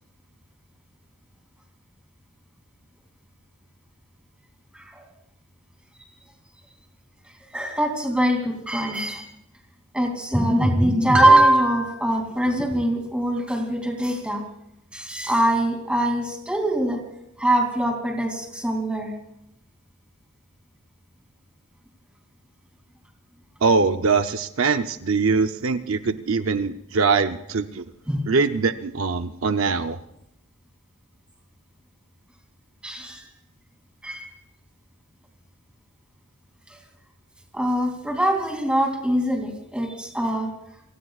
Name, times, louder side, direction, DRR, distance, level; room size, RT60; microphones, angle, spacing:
voice 1, 4.7-5.1 7.5-9.3 9.9-14.4 14.9-17.0 17.4-19.1 28.1-28.2 32.8-33.2 34.0-34.3 37.5-40.5, right 1 dB, 5° right, 3 dB, 2.8 m, -22 dB
voice 2, 23.6-27.9 28.3-30.0, right 4 dB, 65° right, 8 dB, 0.7 m, -22 dB
29.5 x 18.0 x 2.4 m, 0.81 s
head